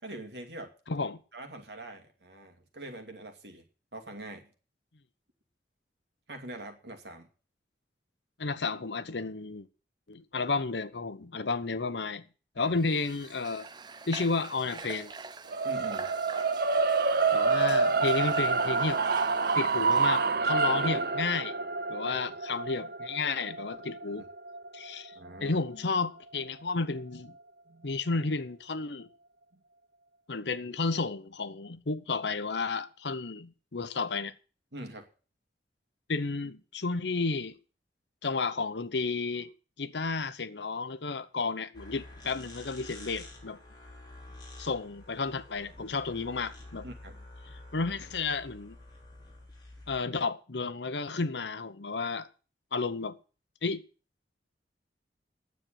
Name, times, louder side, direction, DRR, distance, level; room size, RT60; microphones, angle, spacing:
voice 1, 0.0-0.7 1.3-3.6 3.9-4.5 6.3-7.3 12.6-12.7 15.6-16.1 22.0-22.2 24.2-24.3 25.1-25.6 27.7-27.9 29.5-29.6 34.7-35.1 46.8-47.2, right 1 dB, 75° right, 2.4 m, -44 dB
voice 2, 0.9-1.2 8.4-9.7 10.1-12.2 12.6-13.7 14.1-15.1 17.3-19.0 19.5-21.5 21.9-24.3 24.7-25.1 25.4-27.3 27.8-29.1 30.3-34.3 36.1-37.5 38.2-39.5 39.8-43.6 44.6-46.9 47.7-48.8 49.9-52.3 52.7-53.2 53.6-53.8, left 4 dB, 80° left, 0.9 m, -32 dB
Water / Water tap faucet, 12.8-20.3, right 4 dB, 25° right, 0.6 m, -45 dB
sound 1, 15.5-25.7, right 4 dB, 60° right, 0.7 m, -28 dB
sound 2, 41.7-50.0, left 2 dB, 25° left, 3.9 m, -49 dB
9.6 x 7.7 x 8.8 m
head